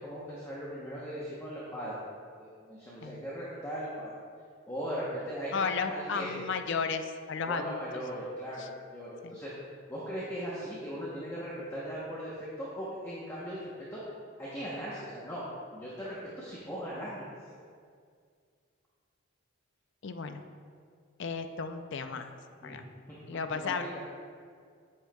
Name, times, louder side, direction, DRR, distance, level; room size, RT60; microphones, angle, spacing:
voice 1, 0.0-2.0 2.4-4.1 4.7-6.4 7.4-9.5 9.9-14.0 14.4-15.4 15.7-17.2 22.6-22.8 23.3-24.0, equal, 10° left, -8 dB, 0.8 m, -39 dB
voice 2, 5.5-7.8 8.6-8.7 9.2-9.3 20.0-20.4 21.2-22.3 22.6-22.8 23.3-23.9, left 5 dB, 55° left, 8 dB, 0.4 m, -34 dB
8.9 x 7.5 x 2.3 m, 2.1 s
head